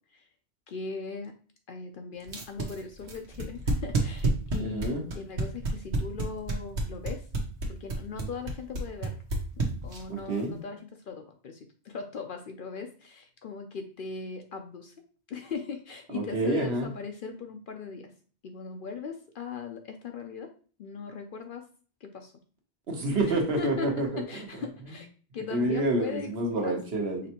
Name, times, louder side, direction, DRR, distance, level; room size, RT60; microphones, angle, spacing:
voice 1, 0.7-1.3 1.7-7.2 7.7-9.2 9.8-14.9 15.3-18.1 18.4-20.5 20.8-21.6 22.0-22.3 23.6-23.9 24.2-25.1 25.3-26.3 26.6-26.8, left 5 dB, 60° left, 5 dB, 0.6 m, -39 dB
sound 1, 2.3-10.2, right 2 dB, 80° right, 1.3 m, -29 dB
voice 2, 4.6-5.0 10.1-10.6 16.1-16.9 22.9-24.2 25.5-27.3, right 2 dB, 65° right, 2 dB, 1.2 m, -28 dB
5.1 x 3.3 x 2.9 m, 0.41 s
omnidirectional pair, 1.2 m